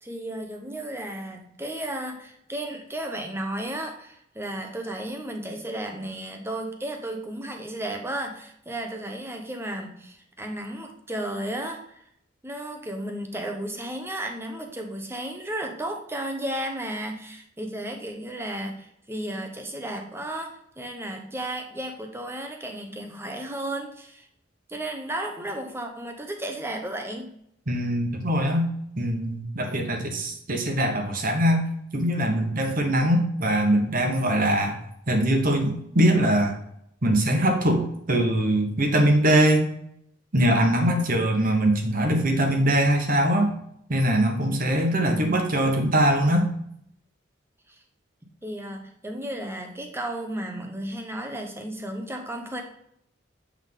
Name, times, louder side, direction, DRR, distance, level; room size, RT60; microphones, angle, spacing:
voice 1, 0.0-12.0 12.4-24.3 24.7-27.3 47.7-47.8 48.4-52.6, right 1 dB, 10° right, 3 dB, 0.8 m, -34 dB
voice 2, 27.7-28.7 29.0-31.6 31.9-34.8 35.1-36.5 37.0-37.8 38.1-39.7 40.3-43.5 43.9-46.5, right 1 dB, 45° right, 3 dB, 1.0 m, -22 dB
7.8 x 3.6 x 3.7 m, 0.72 s
head